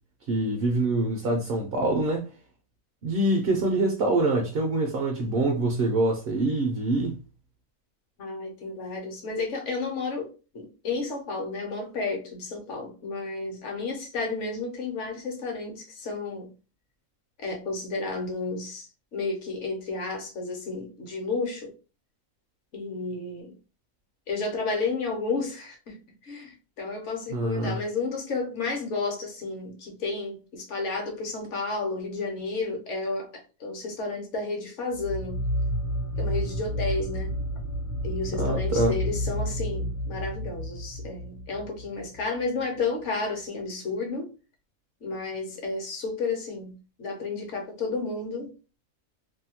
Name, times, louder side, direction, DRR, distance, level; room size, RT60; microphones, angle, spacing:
voice 1, 0.3-2.3 3.0-7.2 27.3-27.8 38.4-38.9, right 2 dB, 60° right, 0.6 m, -25 dB
voice 2, 8.2-16.5 17.4-21.7 22.7-23.6 24.3-35.4 36.2-37.4 38.0-44.3 45.0-48.5, left 3 dB, 65° left, 1.0 m, -32 dB
sound 1, 34.9-42.3, equal, 85° left, 1.0 m, -30 dB
2.7 x 2.1 x 2.8 m
omnidirectional pair, 1.4 m